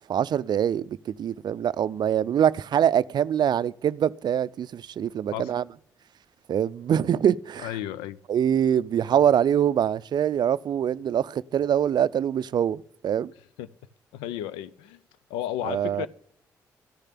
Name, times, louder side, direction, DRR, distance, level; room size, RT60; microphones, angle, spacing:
voice 1, 0.1-5.6 6.5-7.7 8.3-13.3 15.6-16.1, right 9 dB, 60° right, 0.4 m, -24 dB
voice 2, 7.6-8.2 13.6-13.7 14.1-15.0 15.3-16.1, left 12 dB, 90° left, 0.5 m, -33 dB
13.5 x 6.6 x 8.4 m
hypercardioid pair, 50°, 8 cm